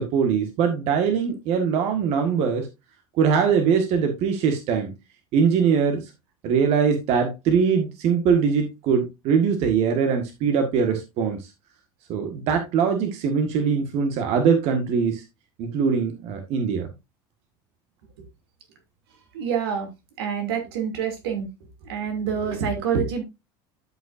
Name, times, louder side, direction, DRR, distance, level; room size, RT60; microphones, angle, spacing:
voice 1, 0.0-2.7 3.2-4.9 5.3-6.1 6.4-11.5 12.1-15.2 15.6-16.9, right 6 dB, 55° right, 5 dB, 1.7 m, -22 dB
voice 2, 19.3-19.9 20.2-21.5 21.8-23.2, right 7 dB, 85° right, 4 dB, 2.8 m, -27 dB
12.5 x 5.6 x 2.6 m, 0.23 s
supercardioid pair, 105°, 13 cm